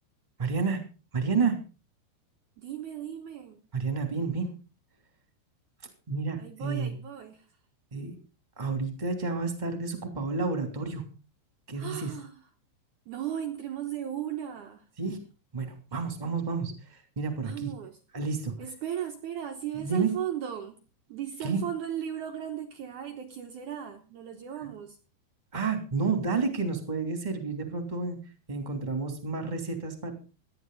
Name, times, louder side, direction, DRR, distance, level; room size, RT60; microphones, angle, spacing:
voice 1, 0.4-0.8 1.1-1.6 3.7-4.5 6.1-6.9 7.9-8.1 8.6-11.0 11.7-12.1 15.0-15.2 15.5-17.7 18.1-18.5 19.7-20.1 21.4-21.6 24.6-24.7 25.5-28.2 28.5-30.1, right 4 dB, 15° right, 2.2 m, -30 dB
voice 2, 2.6-3.6 6.4-7.5 11.7-12.4 13.1-14.9 17.4-18.0 18.6-20.8 21.1-25.0, right 10 dB, 80° right, 1.7 m, -36 dB
17.0 x 12.5 x 4.1 m
omnidirectional pair, 5.2 m